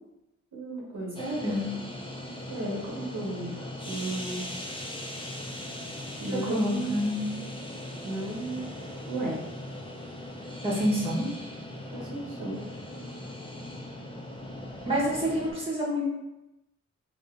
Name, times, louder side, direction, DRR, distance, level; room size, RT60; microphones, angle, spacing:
voice 1, 0.5-1.2 2.5-3.5 3.9-4.4 6.2-7.0 8.0-8.6 9.1-9.4 11.9-12.6, right 2 dB, 80° right, -5 dB, 1.0 m, -34 dB
sound 1, 1.1-15.5, left 1 dB, 15° left, 0.5 m, -39 dB
voice 2, 1.2-1.7 6.5-7.4 10.6-11.3 14.8-16.1, equal, 20° right, -6 dB, 1.2 m, -28 dB
2.8 x 2.7 x 3.5 m, 0.95 s
wide cardioid pair, 70°, 30 cm